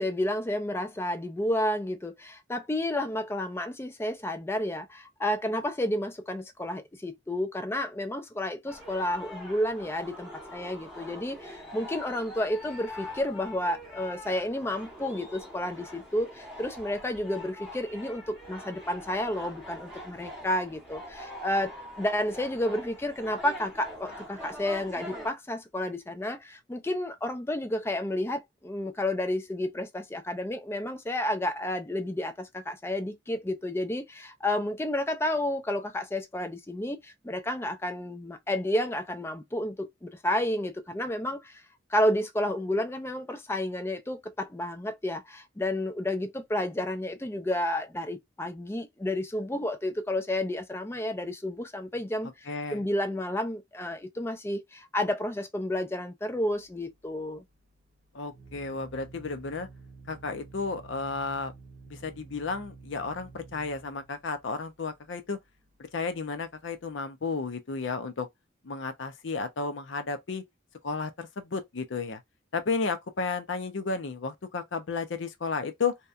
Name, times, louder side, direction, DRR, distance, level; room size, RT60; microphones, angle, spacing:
voice 1, 0.0-21.7 22.0-41.6 41.9-57.4, left 1 dB, 15° left, 0.4 m, -31 dB
sound 1, 8.7-25.3, left 1 dB, 5° right, 0.8 m, -44 dB
voice 2, 52.5-52.8 58.1-59.7 60.1-61.5 61.9-65.4 65.9-68.3 68.6-70.4 70.8-72.2 72.5-76.0, left 4 dB, 70° left, 0.6 m, -33 dB
Organ, 56.5-67.0, right 3 dB, 40° right, 0.6 m, -51 dB
2.8 x 2.2 x 2.4 m
head